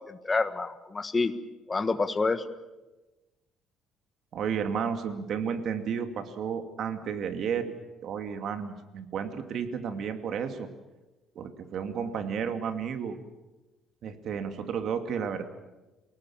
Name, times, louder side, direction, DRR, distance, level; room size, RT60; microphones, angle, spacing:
voice 1, 0.1-1.3 1.7-2.4, left 3 dB, 20° left, 10 dB, 1.5 m, -28 dB
voice 2, 4.3-7.7 8.0-10.7 11.3-13.2 14.0-15.4, right 7 dB, 60° right, 7 dB, 2.5 m, -32 dB
28.0 x 19.0 x 7.3 m, 1.1 s
cardioid pair, 125°, 0 cm